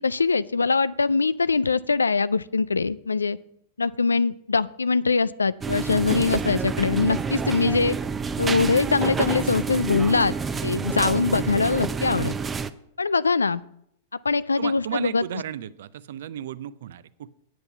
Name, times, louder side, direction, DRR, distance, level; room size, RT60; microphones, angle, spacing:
voice 1, 0.0-3.4 3.8-8.0 8.4-10.3 10.6-12.3 13.0-13.6 14.2-15.2, left 4 dB, 85° left, 18 dB, 0.3 m, -22 dB
sound 1, 5.6-12.7, right 5 dB, 15° right, 0.5 m, -28 dB
voice 2, 14.6-17.3, right 11 dB, 65° right, 16 dB, 0.5 m, -34 dB
9.4 x 8.1 x 5.5 m, 0.72 s
figure-of-eight pair, 100°, 0 cm